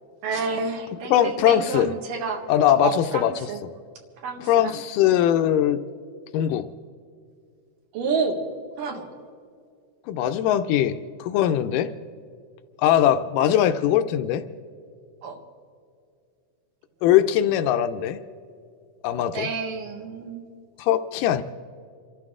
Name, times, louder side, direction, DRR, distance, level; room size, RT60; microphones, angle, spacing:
voice 1, 0.2-2.4 2.8-3.6 4.2-4.8 7.9-8.4 8.8-9.1 15.2-15.4 19.3-20.4, right 4 dB, 85° right, 2 dB, 3.3 m, -29 dB
voice 2, 1.1-1.9 2.5-3.5 4.4-5.8 6.3-6.7 10.1-11.9 12.8-14.4 17.0-18.2 19.0-19.5 20.8-21.4, left 11 dB, 85° left, 8 dB, 2.2 m, -21 dB
27.5 x 13.0 x 3.7 m, 2.3 s
omnidirectional pair, 3.7 m